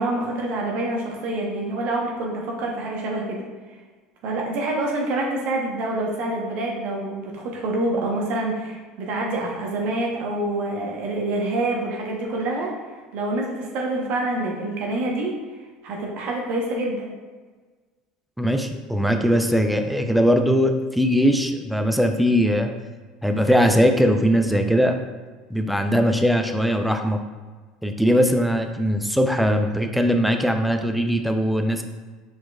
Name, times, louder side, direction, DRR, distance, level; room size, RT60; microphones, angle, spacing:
voice 1, 0.0-3.4 4.2-15.3 15.8-17.1, right 2 dB, 60° right, -1 dB, 0.9 m, -26 dB
voice 2, 18.4-22.7 23.2-25.0 25.5-27.2 27.8-31.8, equal, ahead, 5 dB, 0.5 m, -20 dB
4.5 x 4.2 x 2.3 m, 1.4 s
hypercardioid pair, 80°, 3 cm